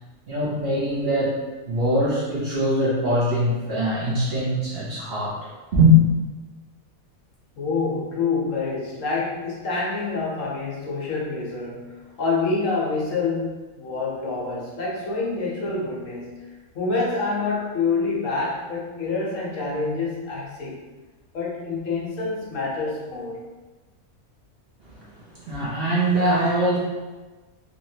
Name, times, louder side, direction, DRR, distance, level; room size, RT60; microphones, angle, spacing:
voice 1, 0.3-1.4 1.7-6.0 24.9-26.8, equal, 50° right, -7 dB, 0.8 m, -22 dB
voice 2, 7.6-11.9 12.2-16.3 16.7-20.8 21.3-23.4, left 4 dB, 65° left, -5 dB, 1.1 m, -27 dB
3.1 x 2.8 x 2.7 m, 1.2 s
omnidirectional pair, 1.5 m